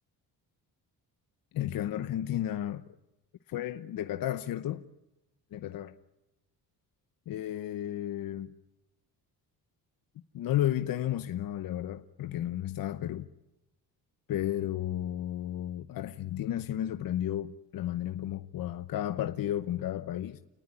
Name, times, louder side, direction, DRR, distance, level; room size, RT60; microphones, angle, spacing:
voice 1, 1.5-2.8 3.5-4.8 5.5-5.9 7.3-8.5 10.3-13.3 14.3-20.4, left 12 dB, 65° left, 0.9 m, -33 dB
29.5 x 19.5 x 9.7 m
cardioid pair, 155°, 37 cm